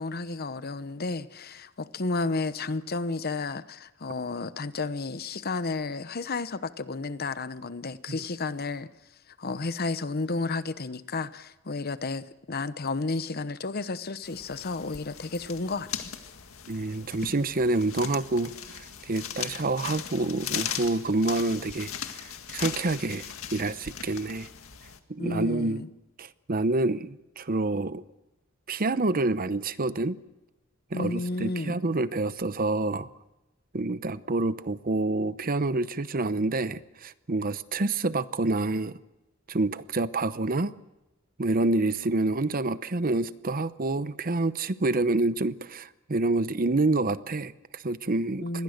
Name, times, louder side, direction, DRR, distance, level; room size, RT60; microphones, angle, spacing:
voice 1, 0.0-8.9 9.4-16.1 25.2-25.9 30.9-31.8 48.4-48.6, left 3 dB, 50° left, 0.9 m, -32 dB
sound 1, 14.2-25.0, left 8 dB, 80° left, 1.9 m, -38 dB
voice 2, 16.7-21.9 22.2-24.5 25.1-25.8 26.2-28.0 28.7-30.2 30.9-33.1 33.7-39.0 39.5-40.7 41.4-48.6, right 2 dB, 45° right, 0.8 m, -27 dB
26.5 x 21.5 x 6.6 m
head